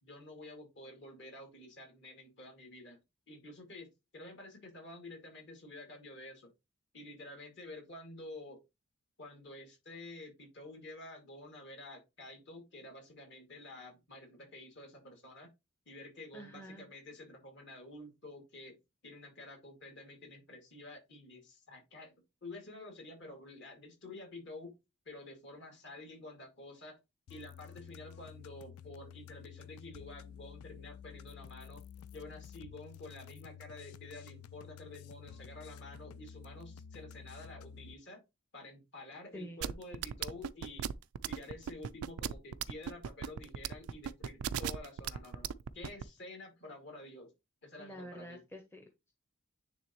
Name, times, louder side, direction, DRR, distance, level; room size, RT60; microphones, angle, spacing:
voice 1, 0.0-3.0 3.3-6.5 6.9-8.6 9.2-15.5 15.9-18.8 19.0-22.1 22.4-24.7 25.1-27.0 27.3-31.8 32.1-38.2 38.5-40.9 41.3-47.3 47.6-48.4, left 2 dB, 55° left, 2 dB, 2.3 m, -50 dB
voice 2, 16.3-16.9 39.3-39.6 47.8-49.1, equal, 10° left, 4 dB, 0.7 m, -48 dB
sound 1, 27.3-37.9, left 7 dB, 85° left, 0.4 m, -51 dB
sound 2, 39.6-46.0, right 8 dB, 85° right, 0.4 m, -36 dB
9.5 x 3.4 x 3.0 m, 0.24 s
head